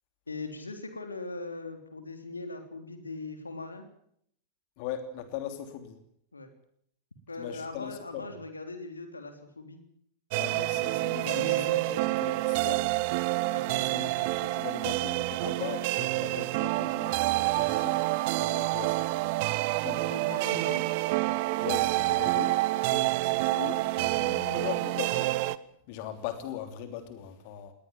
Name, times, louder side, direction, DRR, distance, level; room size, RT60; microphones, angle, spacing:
voice 1, 0.3-3.8 6.3-6.5 7.3-9.8 11.2-11.7 13.5-13.9 20.1-20.9, left 3 dB, 80° left, 7 dB, 3.5 m, -40 dB
voice 2, 4.8-6.0 7.4-8.2 10.3-12.9 13.8-18.1 18.3-19.3 19.7-20.1 21.6-25.3 25.9-27.7, left 9 dB, 45° left, 8 dB, 3.1 m, -40 dB
sound 1, 10.3-25.6, right 20 dB, 50° right, 1.0 m, -28 dB
22.0 x 19.0 x 7.3 m, 0.69 s
figure-of-eight pair, 90°, 0 cm